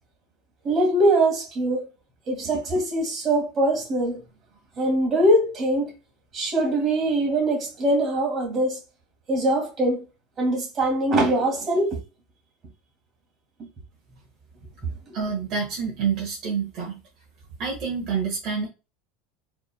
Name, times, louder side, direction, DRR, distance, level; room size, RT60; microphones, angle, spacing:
voice 1, 0.6-1.8 2.3-4.2 4.8-5.9 6.3-8.8 9.3-10.0 10.4-12.0, right 1 dB, 25° right, 1.9 m, -22 dB
voice 2, 15.1-17.0 17.6-18.7, right 6 dB, 40° right, 1.5 m, -28 dB
5.0 x 3.7 x 2.3 m
supercardioid pair, 165°, 0 cm